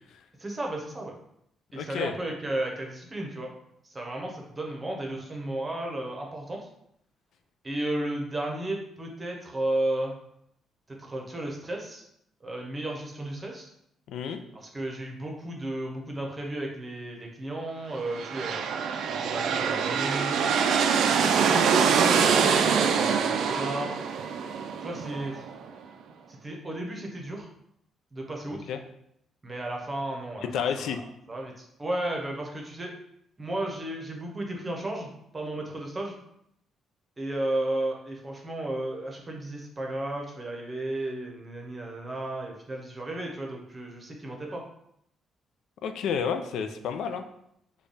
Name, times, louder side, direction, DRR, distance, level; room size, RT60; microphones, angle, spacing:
voice 1, 0.4-1.2 1.7-3.5 3.8-6.6 7.6-10.1 10.9-12.0 12.4-13.7 14.5-18.6 19.1-20.4 20.9-24.0 24.8-25.4 26.3-27.5 28.1-28.7 29.4-30.5 30.8-32.9 33.4-36.1 37.2-44.6, right 1 dB, 25° right, 0 dB, 0.8 m, -34 dB
voice 2, 1.7-2.1 14.1-14.4 28.7-28.8 30.4-31.0 45.8-47.3, left 7 dB, 80° left, 7 dB, 0.3 m, -30 dB
sound 1, 18.0-25.7, right 6 dB, 75° right, 0.3 m, -24 dB
3.3 x 2.3 x 3.9 m, 0.74 s
cardioid pair, 90°, 0 cm